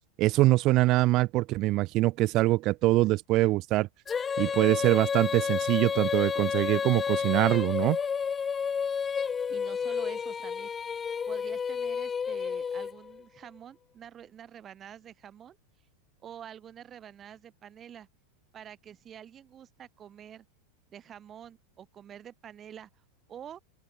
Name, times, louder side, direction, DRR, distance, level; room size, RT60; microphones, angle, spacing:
voice 1, 0.2-3.9 4.4-8.0, right 19 dB, 40° right, 0.3 m, -24 dB
Female singing, 4.1-13.2, left 6 dB, 20° left, 1.5 m, -31 dB
voice 2, 9.5-10.7 11.3-15.6 16.2-18.1 18.5-20.5 20.9-22.9 23.3-23.6, right 9 dB, 25° right, 3.8 m, -47 dB
open air
supercardioid pair, 140°, 0 cm